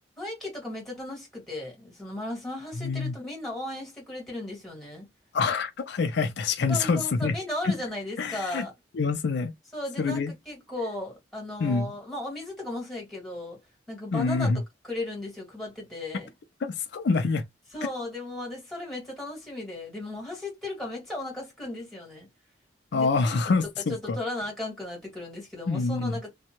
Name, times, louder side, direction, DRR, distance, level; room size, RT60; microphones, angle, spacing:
voice 1, 0.2-5.1 6.7-8.7 9.7-13.6 13.9-14.5 14.8-16.3 17.7-22.3 22.9-23.1 23.9-26.3, left 1 dB, ahead, 1.7 m, -36 dB
voice 2, 2.8-3.1 5.3-7.3 7.6-7.7 8.2-8.7 8.9-9.5 10.0-10.3 11.6-11.9 14.1-14.6 16.6-17.4 22.9-24.2 25.7-26.2, left 4 dB, 65° left, 0.4 m, -26 dB
2.6 x 2.2 x 2.9 m
head